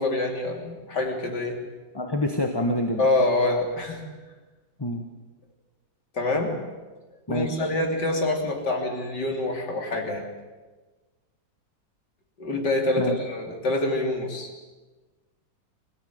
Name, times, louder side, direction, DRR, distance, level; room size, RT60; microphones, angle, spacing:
voice 1, 0.0-1.6 3.0-4.0 6.1-6.5 7.3-10.2 12.4-14.5, left 2 dB, 65° left, 2 dB, 3.8 m, -26 dB
voice 2, 1.9-3.1 4.8-5.0 7.3-7.7 13.0-13.1, left 1 dB, 15° left, 4 dB, 1.2 m, -26 dB
24.5 x 16.5 x 9.4 m, 1.3 s
omnidirectional pair, 2.0 m